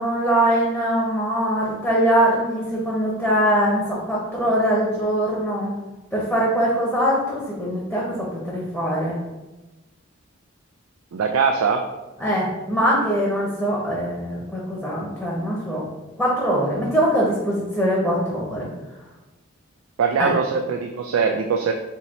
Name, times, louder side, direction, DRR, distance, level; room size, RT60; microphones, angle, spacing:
voice 1, 0.0-5.8 6.1-9.2 12.2-15.8 16.2-18.7 20.2-20.3, equal, ahead, -5 dB, 0.8 m, -22 dB
voice 2, 11.1-11.8 20.0-21.7, right 5 dB, 85° right, 4 dB, 0.4 m, -21 dB
4.4 x 2.8 x 4.1 m, 1.1 s
head